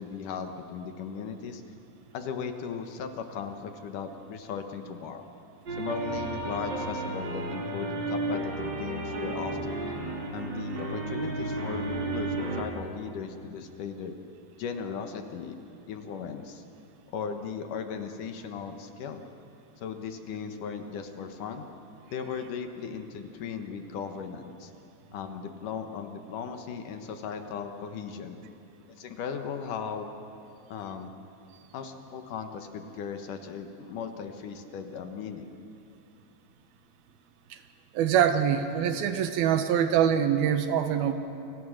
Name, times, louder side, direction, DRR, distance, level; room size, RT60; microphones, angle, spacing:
voice 1, 0.0-1.6 2.1-5.2 5.8-9.8 10.3-14.2 14.6-15.6 15.9-16.6 17.1-19.2 19.8-21.7 22.1-24.7 25.1-28.4 28.9-30.1 30.7-31.1 31.7-35.5, left 6 dB, 65° left, 6 dB, 2.7 m, -37 dB
sound 1, 5.7-12.6, right 2 dB, 35° right, 2.8 m, -33 dB
voice 2, 37.9-41.1, right 9 dB, 90° right, 8 dB, 3.2 m, -24 dB
29.5 x 25.5 x 6.6 m, 2.7 s
omnidirectional pair, 4.2 m